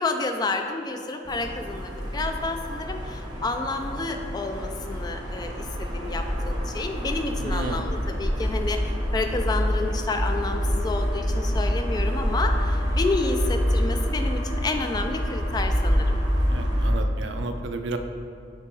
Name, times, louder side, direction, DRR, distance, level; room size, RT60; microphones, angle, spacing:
voice 1, 0.0-5.5 5.8-16.2, left 3 dB, 20° left, 5 dB, 0.3 m, -30 dB
sound 1, 1.3-16.9, equal, 25° right, 0.9 m, -27 dB
voice 2, 7.4-7.9 16.5-18.0, right 3 dB, 75° right, 6 dB, 0.4 m, -32 dB
6.0 x 3.4 x 4.6 m, 2.5 s
head